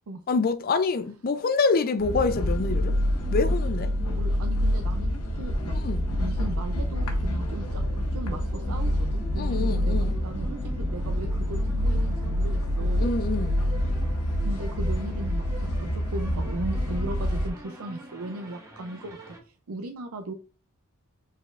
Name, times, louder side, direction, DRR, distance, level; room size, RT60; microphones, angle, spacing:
voice 1, 0.3-2.9 3.3-3.9 5.7-6.0 9.3-10.1 13.0-13.6, left 4 dB, 40° left, 0.4 m, -26 dB
sound 1, 2.0-17.5, equal, 90° left, 1.0 m, -27 dB
sound 2, 2.5-19.4, right 1 dB, 15° right, 0.9 m, -46 dB
voice 2, 4.1-5.8 6.2-7.8 8.1-10.0 10.2-13.1 14.4-20.3, right 2 dB, 75° right, 0.5 m, -37 dB
5.0 x 4.1 x 2.4 m
head